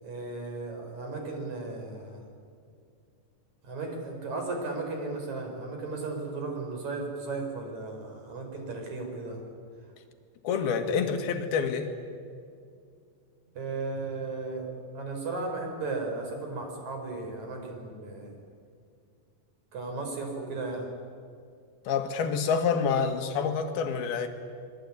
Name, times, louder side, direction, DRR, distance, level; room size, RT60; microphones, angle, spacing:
voice 1, 0.0-2.2 3.6-9.4 13.6-14.7 14.9-18.3 19.7-20.9, right 3 dB, 45° right, 3 dB, 5.9 m, -35 dB
voice 2, 10.4-11.9 21.9-24.3, left 6 dB, 70° left, 5 dB, 3.6 m, -27 dB
25.0 x 22.0 x 9.8 m, 2.3 s
omnidirectional pair, 4.8 m